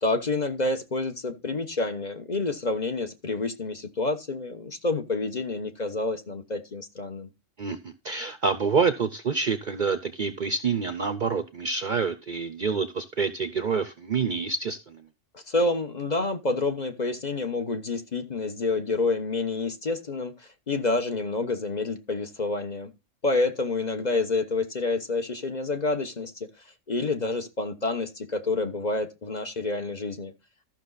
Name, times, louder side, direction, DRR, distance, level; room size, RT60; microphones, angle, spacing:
voice 1, 0.0-7.3 15.3-22.9 23.2-26.5 26.9-30.3, left 3 dB, 35° left, 1.2 m, -28 dB
voice 2, 7.6-15.0, right 5 dB, 45° right, 0.7 m, -27 dB
13.5 x 6.2 x 4.0 m
omnidirectional pair, 1.3 m